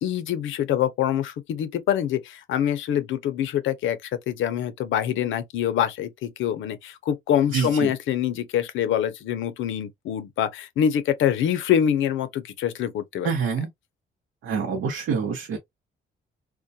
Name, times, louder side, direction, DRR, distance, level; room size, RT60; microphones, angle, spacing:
voice 1, 0.0-13.3, left 9 dB, 75° left, 0.5 m, -25 dB
voice 2, 7.5-7.9 13.2-13.7 14.4-15.6, right 6 dB, 75° right, 0.8 m, -26 dB
2.2 x 2.2 x 2.6 m
cardioid pair, 90°, 20 cm